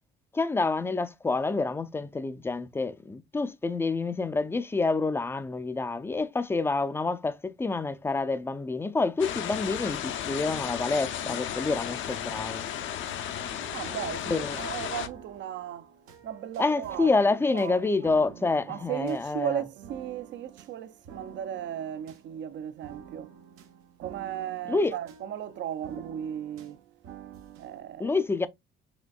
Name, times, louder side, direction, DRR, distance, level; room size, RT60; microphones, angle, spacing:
voice 1, 0.3-12.6 14.3-14.6 16.6-19.6 24.7-24.9 28.0-28.5, left 3 dB, 10° left, 0.4 m, -28 dB
sound 1, 9.2-15.1, left 9 dB, 65° left, 0.6 m, -34 dB
sound 2, 12.2-27.8, right 9 dB, 90° right, 1.0 m, -50 dB
voice 2, 13.7-15.9 16.2-17.2 17.5-17.9 18.7-23.3 24.0-26.8 27.6-28.2, right 10 dB, 60° right, 0.5 m, -36 dB
5.1 x 3.2 x 2.3 m
cardioid pair, 125°, 21 cm